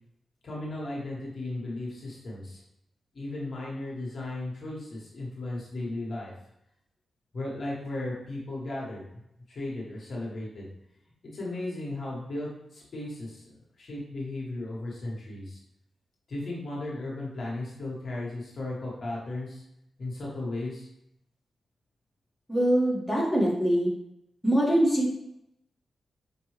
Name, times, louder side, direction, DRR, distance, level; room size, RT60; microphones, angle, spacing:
voice 1, 0.4-2.6 3.1-6.3 7.3-9.0 9.5-10.7 11.3-15.6 16.3-19.6 20.0-20.9, left 2 dB, 65° left, -4 dB, 1.4 m, -35 dB
voice 2, 22.5-23.9 24.4-25.1, right 1 dB, 5° left, -5 dB, 1.5 m, -23 dB
5.4 x 2.6 x 3.2 m, 0.80 s
cardioid pair, 65°, 0 cm